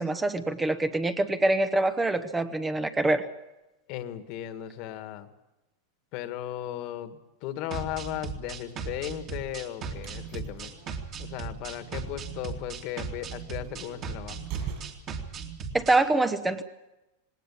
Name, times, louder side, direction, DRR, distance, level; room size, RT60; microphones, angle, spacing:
voice 1, 0.0-3.2 15.7-16.6, right 2 dB, 10° right, 9 dB, 1.1 m, -25 dB
voice 2, 3.9-5.3 6.1-10.7 11.2-14.5, left 12 dB, 50° left, 9 dB, 1.9 m, -36 dB
sound 1, 7.7-16.0, right 5 dB, 35° right, 2.7 m, -37 dB
sound 2, 9.7-15.3, right 7 dB, 50° right, 7.8 m, -44 dB
19.5 x 18.5 x 8.6 m, 0.96 s
supercardioid pair, 130°, 0 cm